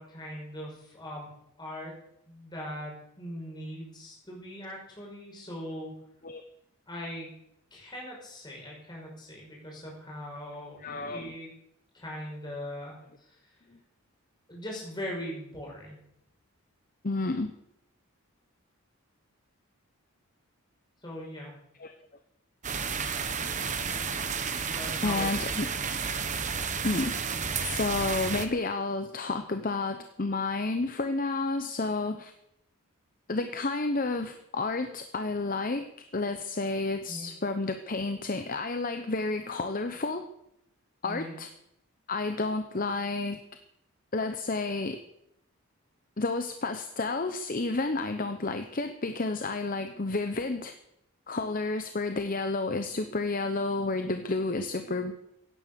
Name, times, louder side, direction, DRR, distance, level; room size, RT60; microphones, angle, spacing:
voice 1, 0.0-1.9 2.3-5.9 6.9-7.3 7.7-10.8 11.0-11.5 11.9-13.6 14.5-16.0 21.0-21.5 24.7-25.3 25.7-25.8 37.1-37.3 41.0-41.3, equal, 20° left, -3 dB, 5.5 m, -40 dB
voice 2, 10.8-11.3 17.0-17.5 21.8-21.9 23.9-24.1 25.0-25.7 26.8-27.2 27.6-32.3 33.3-40.2 41.0-41.5 42.1-43.4 44.1-45.0 46.2-50.7 51.3-55.1, left 3 dB, 40° left, 8 dB, 0.8 m, -31 dB
sound 1, 22.6-28.5, right 6 dB, 35° right, 1.0 m, -32 dB
16.5 x 9.6 x 6.9 m, 0.77 s
head